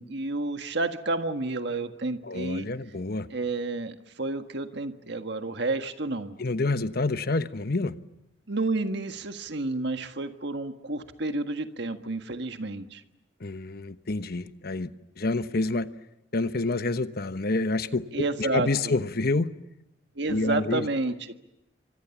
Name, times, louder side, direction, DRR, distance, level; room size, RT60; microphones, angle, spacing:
voice 1, 0.0-2.7 3.3-6.4 8.5-13.0 18.1-18.9 20.1-21.3, right 2 dB, 65° right, 1.6 m, -30 dB
voice 2, 2.2-3.3 6.4-7.9 13.4-14.9 15.2-15.9 16.3-19.5 20.3-21.1, left 2 dB, 55° left, 1.1 m, -28 dB
29.0 x 25.5 x 7.2 m
head